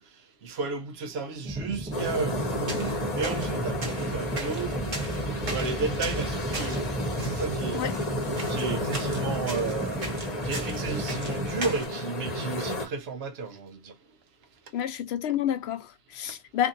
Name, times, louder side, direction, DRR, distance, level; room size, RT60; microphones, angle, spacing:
voice 1, 0.4-6.9 7.2-7.9 8.5-10.0 10.4-13.9, right 4 dB, 85° right, 0.9 m, -33 dB
sound 1, 1.4-11.8, right 1 dB, 10° right, 0.8 m, -35 dB
sound 2, 1.9-12.9, left 1 dB, 45° left, 0.9 m, -32 dB
sound 3, 2.4-11.9, right 2 dB, 60° right, 1.1 m, -40 dB
voice 2, 14.7-16.7, left 10 dB, 85° left, 0.8 m, -29 dB
2.6 x 2.5 x 2.5 m
omnidirectional pair, 1.1 m